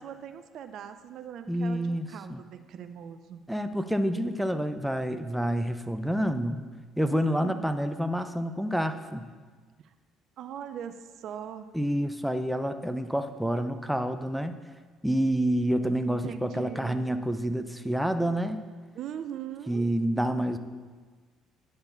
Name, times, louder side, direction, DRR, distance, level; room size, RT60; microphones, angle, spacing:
voice 1, 0.0-3.4 7.0-7.7 9.8-9.9 10.4-11.7 16.1-17.0 18.9-19.9, right 9 dB, 60° right, 9 dB, 0.5 m, -40 dB
voice 2, 1.5-2.4 3.5-6.6 7.0-9.3 11.7-14.6 15.0-18.6 19.7-20.6, equal, ahead, 8 dB, 0.7 m, -28 dB
9.6 x 4.4 x 6.9 m, 1.5 s
hypercardioid pair, 55°, 0 cm